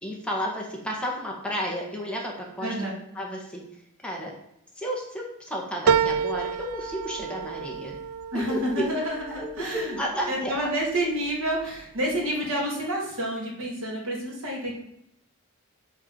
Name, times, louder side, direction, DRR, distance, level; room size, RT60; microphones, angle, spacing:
voice 1, 0.0-2.7 3.1-3.7 4.0-4.3 4.7-8.0 8.5-8.8 9.3-10.5, equal, 5° left, -2 dB, 1.7 m, -32 dB
voice 2, 2.6-3.0 8.3-10.0 10.3-14.8, right 1 dB, 65° right, -2 dB, 3.3 m, -29 dB
sound 1, 5.9-10.6 11.1-11.8 12.2-12.3, right 6 dB, 85° right, 0.5 m, -29 dB
8.4 x 4.8 x 7.5 m, 0.79 s
head